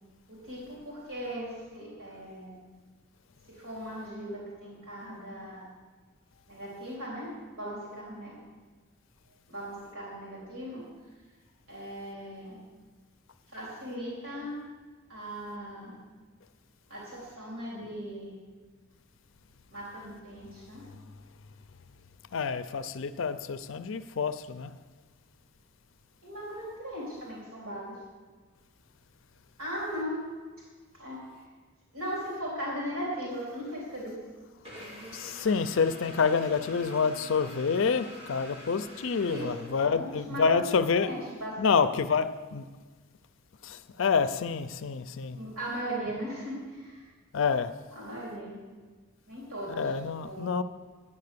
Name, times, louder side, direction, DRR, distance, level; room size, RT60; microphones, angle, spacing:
voice 1, 0.3-2.6 3.5-5.7 6.5-8.3 9.5-10.8 11.7-12.6 13.5-14.6 15.1-15.9 16.9-18.3 19.7-20.8 26.2-28.0 29.6-30.2 30.9-31.4 31.9-34.2 39.2-41.9 45.3-47.1 47.9-48.5 49.3-50.6, equal, 85° right, 3.2 m, -38 dB
voice 2, 22.3-24.7 35.1-41.1 41.6-42.7 43.6-45.4 47.3-47.7 49.7-50.6, left 5 dB, 65° left, 0.5 m, -28 dB
sound 1, 34.6-40.2, equal, 25° right, 2.3 m, -46 dB
9.9 x 9.5 x 6.7 m
head